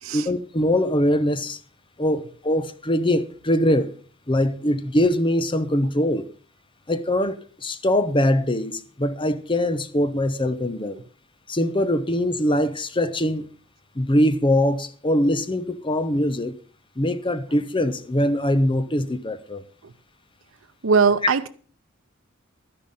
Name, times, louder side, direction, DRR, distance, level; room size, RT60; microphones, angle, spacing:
voice 1, 0.1-1.6 2.0-3.9 4.3-6.3 6.9-7.4 7.6-11.0 11.5-13.5 14.0-16.5 17.0-19.6, left 1 dB, 25° left, 0.9 m, -22 dB
voice 2, 20.8-21.5, right 5 dB, 90° right, 0.7 m, -20 dB
12.0 x 10.5 x 5.5 m
head